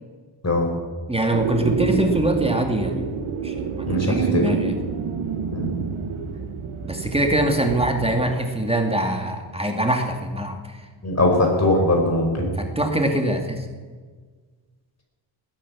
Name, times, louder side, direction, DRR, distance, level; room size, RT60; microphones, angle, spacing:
voice 1, 1.1-3.1 3.4-4.8 6.8-10.8 12.6-13.7, right 1 dB, 10° right, 3 dB, 2.3 m, -23 dB
sound 1, 1.3-8.2, right 6 dB, 75° right, 1.6 m, -28 dB
voice 2, 3.9-4.4 5.5-5.7 11.0-12.5, left 1 dB, 30° left, 1 dB, 5.3 m, -20 dB
20.0 x 10.0 x 7.3 m, 1.5 s
cardioid pair, 65°, 49 cm